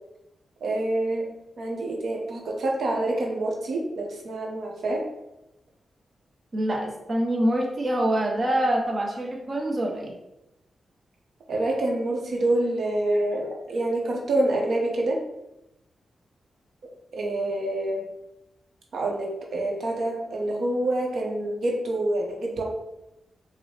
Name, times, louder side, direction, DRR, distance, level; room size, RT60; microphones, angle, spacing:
voice 1, 0.6-1.3 1.6-5.0 11.5-15.2 17.1-18.0 18.9-22.6, right 1 dB, 70° right, 0 dB, 0.7 m, -27 dB
voice 2, 6.5-10.1, right 1 dB, 35° right, 0 dB, 0.6 m, -25 dB
5.1 x 2.0 x 3.2 m, 0.90 s
wide cardioid pair, 100°, 0 cm